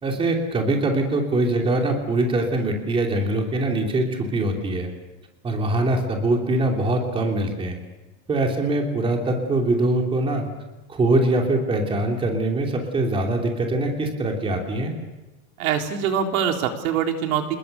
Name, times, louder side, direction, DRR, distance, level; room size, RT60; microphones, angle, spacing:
voice 1, 0.0-4.9 5.4-7.8 8.3-10.5 10.9-14.9, right 2 dB, 10° right, 2 dB, 3.0 m, -23 dB
voice 2, 15.6-17.6, right 8 dB, 65° right, 4 dB, 3.9 m, -24 dB
28.5 x 21.0 x 6.8 m, 1.1 s
supercardioid pair, 175°, 44 cm